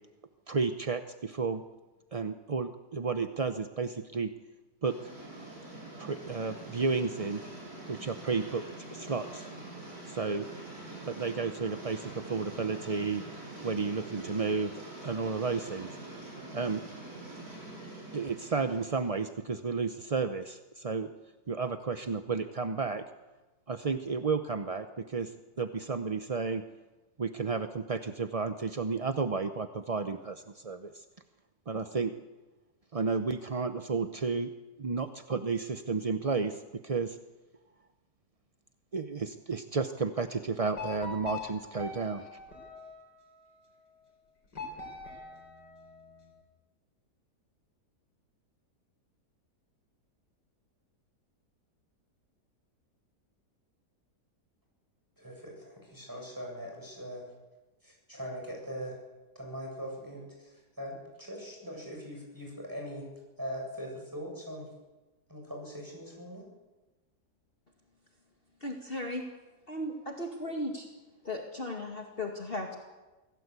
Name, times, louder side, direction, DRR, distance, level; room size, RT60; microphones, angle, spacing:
voice 1, 0.5-1.6 2.1-4.3 4.8-5.1 6.0-7.4 7.9-8.6 8.9-9.5 10.1-10.5 11.0-15.9 16.5-16.8 18.1-21.1 21.5-23.0 23.7-26.6 27.2-31.0 31.7-32.1 32.9-34.5 34.8-37.2 38.9-42.3, right 4 dB, 35° right, 9 dB, 0.5 m, -32 dB
sound 1, 4.8-19.3, right 2 dB, 60° right, 8.5 m, -45 dB
sound 2, 40.7-43.4 44.5-46.3, left 4 dB, 80° left, 5.2 m, -43 dB
voice 2, 55.2-57.2 57.8-59.0 59.3-63.0 63.4-64.7 65.3-66.5, equal, 10° right, 0 dB, 7.9 m, -41 dB
voice 3, 68.6-69.2 69.7-70.9 71.2-72.8, left 1 dB, 35° left, 1 dB, 2.3 m, -36 dB
25.0 x 17.0 x 8.3 m, 1.2 s
omnidirectional pair, 1.8 m